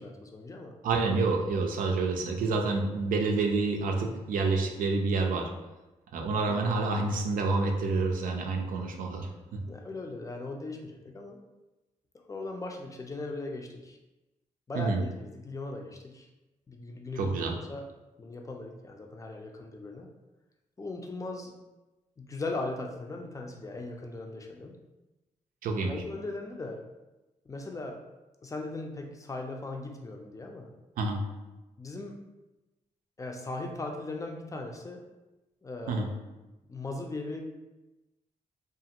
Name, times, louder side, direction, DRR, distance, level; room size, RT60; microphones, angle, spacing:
voice 1, 0.0-0.7 6.5-6.7 9.7-11.4 12.3-14.0 14.7-16.3 16.7-17.8 18.2-20.1 20.8-21.6 22.2-24.8 25.9-26.8 27.5-28.0 28.4-30.7 31.8-32.2 33.2-35.1 35.6-36.1 36.7-37.4, left 2 dB, 25° left, 2 dB, 0.5 m, -38 dB
voice 2, 0.8-5.5 6.1-9.6 14.7-15.0 17.2-17.6 25.6-26.0 31.0-31.2 35.9-36.1, right 3 dB, 80° right, 3 dB, 0.4 m, -28 dB
2.4 x 2.4 x 2.8 m, 1.1 s
cardioid pair, 65°, 14 cm